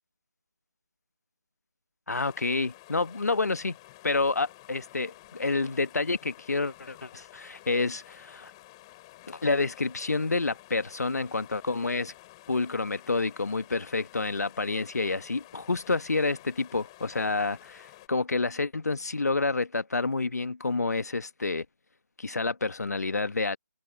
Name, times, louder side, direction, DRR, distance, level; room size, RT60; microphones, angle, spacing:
voice 1, 2.1-3.8 4.0-8.5 9.3-12.1 12.5-21.6 22.2-23.6, left 3 dB, 65° left, 1.5 m, -29 dB
Small waterfall off tree root bubbling - Panther Creek, 2.1-18.1, left 19 dB, 15° left, 7.6 m, -52 dB
figure-of-eight pair, 160°, 10 cm